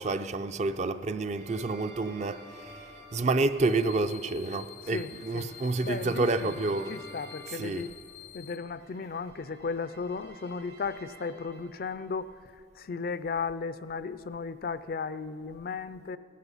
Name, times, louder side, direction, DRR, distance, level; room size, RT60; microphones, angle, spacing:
voice 1, 0.0-7.0 7.5-7.9, right 3 dB, 40° right, 0.4 m, -29 dB
sound 1, 1.3-12.3, equal, 65° right, 2.1 m, -52 dB
sound 2, 3.6-8.6, left 14 dB, 85° left, 1.0 m, -49 dB
voice 2, 4.9-7.9 8.3-16.2, left 5 dB, 55° left, 0.4 m, -36 dB
17.0 x 14.0 x 5.5 m
head